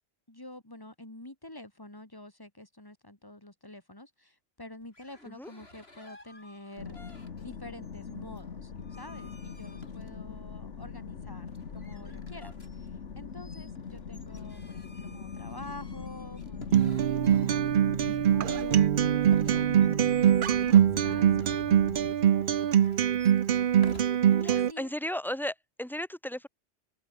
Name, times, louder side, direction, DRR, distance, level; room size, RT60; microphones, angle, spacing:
voice 1, 0.3-12.5 12.8-23.5 23.8-24.9, left 1 dB, 20° left, 3.3 m, -48 dB
sound 1, 4.8-7.6 7.8-10.5 11.5-18.0 19.2-21.7 22.5-24.0, left 2 dB, 60° left, 5.6 m, -53 dB
sound 2, 6.8-22.1, left 6 dB, 85° left, 1.9 m, -42 dB
Acoustic guitar, 16.7-24.7, right 9 dB, 55° right, 0.7 m, -23 dB
voice 2, 24.4-26.5, left 1 dB, ahead, 1.6 m, -35 dB
omnidirectional pair, 1.2 m